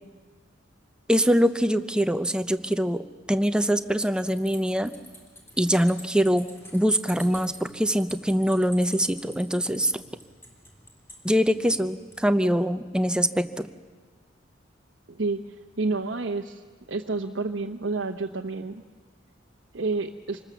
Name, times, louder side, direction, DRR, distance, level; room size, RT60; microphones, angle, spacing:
voice 1, 1.1-4.9 5.6-9.9 11.2-13.7, equal, 5° right, 10 dB, 0.7 m, -23 dB
sound 1, 4.1-12.2, equal, 15° left, 3.7 m, -46 dB
voice 2, 15.1-18.8 19.7-20.4, right 3 dB, 75° right, 2 dB, 0.9 m, -30 dB
26.0 x 20.0 x 7.1 m, 1.5 s
head